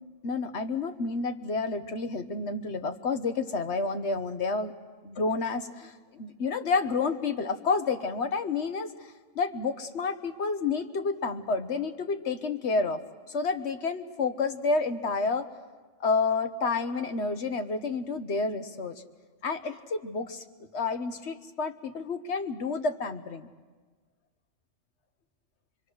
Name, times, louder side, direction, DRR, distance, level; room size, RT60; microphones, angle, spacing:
voice 1, 0.2-4.7 5.0-13.0 13.3-15.5 16.0-18.9 19.4-20.4 20.7-23.5, left 4 dB, 60° left, 7 dB, 1.4 m, -30 dB
24.5 x 23.5 x 6.4 m, 1.4 s
omnidirectional pair, 1.3 m